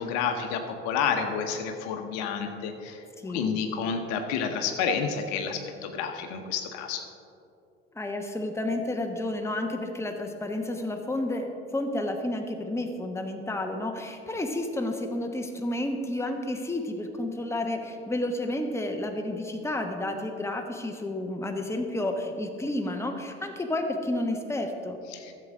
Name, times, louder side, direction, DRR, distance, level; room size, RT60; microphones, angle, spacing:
voice 1, 0.0-3.0 3.3-7.1 25.1-25.3, left 6 dB, 60° left, 5 dB, 1.0 m, -30 dB
voice 2, 7.9-11.5 11.7-25.0, left 1 dB, 10° left, 4 dB, 1.1 m, -31 dB
14.0 x 7.6 x 3.8 m, 2.6 s
figure-of-eight pair, 60°, 32 cm